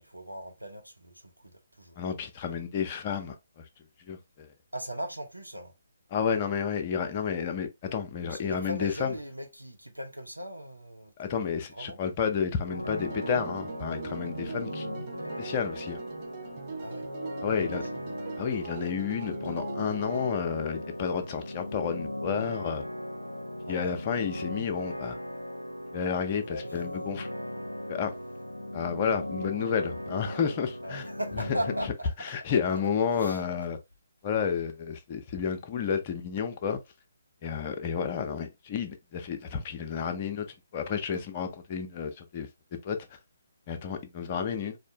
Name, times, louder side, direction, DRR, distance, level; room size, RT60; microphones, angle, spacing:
voice 1, 0.0-1.5 1.8-2.0 4.7-5.7 8.3-11.3 11.7-12.0 16.8-17.0 17.4-18.0 18.8-18.9 23.6-24.0 26.3-26.8 30.8-32.1 33.1-33.4, equal, 90° right, 1.0 m, -39 dB
voice 2, 2.0-3.6 4.1-4.5 6.1-9.1 11.2-14.9 15.4-16.0 17.4-17.8 18.4-22.9 23.7-25.2 25.9-27.3 27.9-28.1 28.7-31.1 32.2-33.8 34.2-36.8 37.4-40.5 40.7-43.0 43.7-44.8, left 7 dB, 30° left, 0.7 m, -31 dB
sound 1, 12.7-31.9, left 1 dB, 85° left, 0.5 m, -38 dB
sound 2, 12.9-20.3, right 7 dB, 35° right, 0.6 m, -42 dB
4.1 x 2.7 x 2.8 m
figure-of-eight pair, 135°, 0 cm